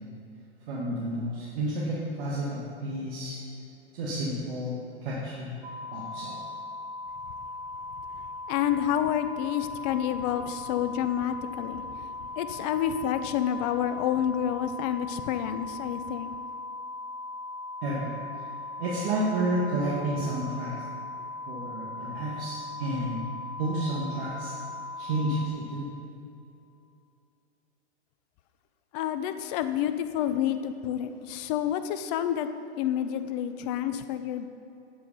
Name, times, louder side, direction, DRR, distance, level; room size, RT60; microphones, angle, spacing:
voice 1, 0.7-3.4 3.9-5.5 5.9-6.4 17.8-18.1 18.8-20.7 21.5-23.2 23.6-24.5 25.0-25.9, right 1 dB, 55° right, -6 dB, 1.8 m, -31 dB
sound 1, 5.6-25.5, left 2 dB, 15° right, 0.8 m, -39 dB
voice 2, 8.5-11.8 12.4-16.4 28.9-32.5 32.8-34.5, left 10 dB, 40° left, 10 dB, 0.6 m, -29 dB
7.9 x 7.8 x 5.5 m, 2.7 s
hypercardioid pair, 120°, 33 cm